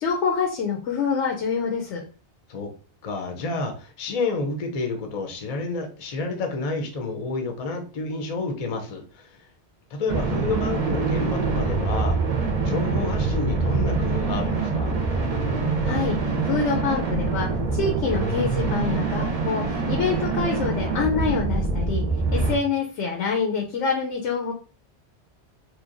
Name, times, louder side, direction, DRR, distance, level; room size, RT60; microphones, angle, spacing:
voice 1, 0.0-2.0 15.8-22.0 22.3-24.5, left 5 dB, 85° left, 0.9 m, -26 dB
voice 2, 3.0-9.5 9.9-12.2 12.6-15.0, left 3 dB, 45° left, 0.5 m, -29 dB
sound 1, 10.1-22.6, right 4 dB, 50° right, 0.5 m, -25 dB
2.9 x 2.2 x 2.5 m
omnidirectional pair, 1.2 m